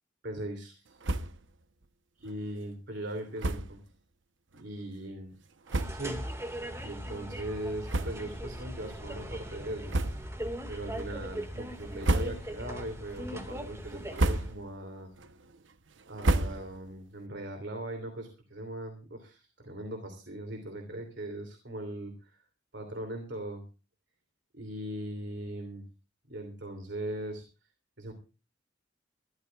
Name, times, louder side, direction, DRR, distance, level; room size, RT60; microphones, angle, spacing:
voice 1, 0.2-1.0 2.2-3.8 4.5-5.3 5.7-6.3 6.8-10.2 10.7-15.1 16.1-22.4 22.7-23.6 24.5-25.8 26.3-27.4 28.0-28.1, right 1 dB, 70° right, 5 dB, 2.9 m, -39 dB
sound 1, 1.0-1.5 1.8-1.9 2.2-2.4 3.4-3.8 4.5-4.6 5.3-5.4 5.7-6.2 6.8-6.9 7.8-8.5 8.9-9.0 9.9-10.5 10.9-11.3 11.8-12.7 13.1-13.5 13.9-14.8 15.1-17.0, right 2 dB, 90° right, 0.9 m, -31 dB
sound 2, 5.7-14.5, equal, 15° right, 1.9 m, -40 dB
23.5 x 13.5 x 2.4 m, 0.33 s
head